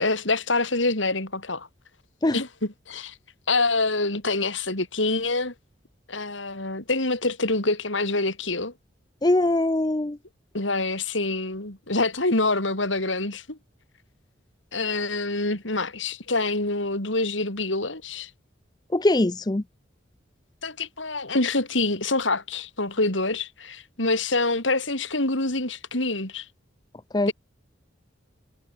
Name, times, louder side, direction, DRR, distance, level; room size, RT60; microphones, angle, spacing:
voice 1, 0.0-1.7 2.3-3.2 3.5-5.5 6.1-8.7 10.5-13.6 14.7-18.3 20.6-26.5 27.3-27.4, left 2 dB, 80° left, 5.2 m, -26 dB
voice 2, 9.2-10.2 18.9-19.6 27.1-27.3, left 2 dB, 20° left, 0.6 m, -22 dB
head